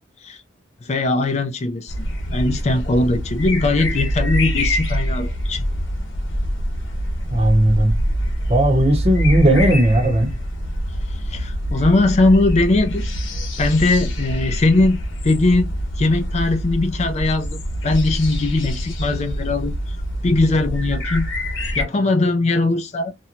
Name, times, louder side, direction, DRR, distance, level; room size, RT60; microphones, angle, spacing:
voice 1, 0.8-1.9 2.3-5.6 11.3-13.1 13.6-20.0 20.2-21.3 21.8-23.1, left 2 dB, 35° left, 0.4 m, -20 dB
sound 1, 1.9-21.8, equal, 65° left, 1.0 m, -25 dB
voice 2, 7.3-7.9 8.5-10.3, right 1 dB, 30° right, 0.8 m, -16 dB
2.5 x 2.1 x 2.9 m
head